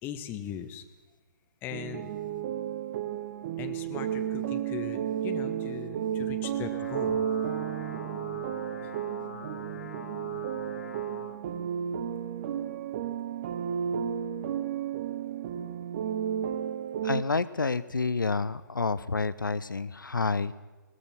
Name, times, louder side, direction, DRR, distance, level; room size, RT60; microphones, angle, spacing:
voice 1, 0.0-0.8 1.6-2.2 3.6-7.3, left 9 dB, 20° left, 9 dB, 1.0 m, -39 dB
sound 1, 1.7-17.2, right 9 dB, 35° right, 0.8 m, -33 dB
sound 2, 6.4-11.4, left 6 dB, 50° left, 1.1 m, -44 dB
voice 2, 17.0-20.5, left 4 dB, 80° left, 17 dB, 0.5 m, -29 dB
17.5 x 14.0 x 5.8 m, 1.2 s
figure-of-eight pair, 125°, 11 cm